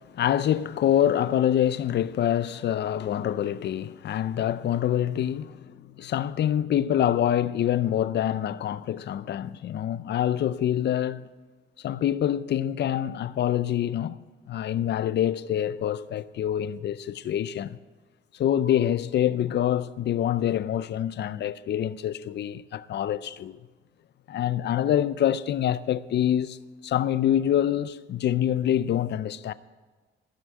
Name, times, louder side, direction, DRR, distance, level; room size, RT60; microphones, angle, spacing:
voice 1, 0.0-11.3 11.8-14.2 14.5-17.8 18.3-23.6 24.3-26.6 26.8-29.5, left 10 dB, 60° left, 0.6 m, -26 dB
15.5 x 6.3 x 8.9 m
cardioid pair, 90°, 20 cm